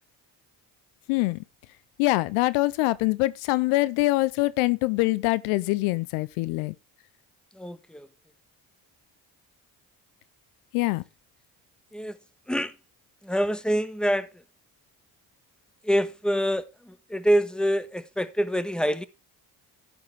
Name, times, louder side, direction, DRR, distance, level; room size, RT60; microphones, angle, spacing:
voice 1, 1.1-1.4 2.0-6.7 10.7-11.0, left 21 dB, 90° left, 0.7 m, -24 dB
voice 2, 7.6-8.1 11.9-12.2 12.5-12.7 13.2-14.3 15.8-19.1, equal, ahead, 1.3 m, -26 dB
11.5 x 9.1 x 3.3 m
supercardioid pair, 50°, 49 cm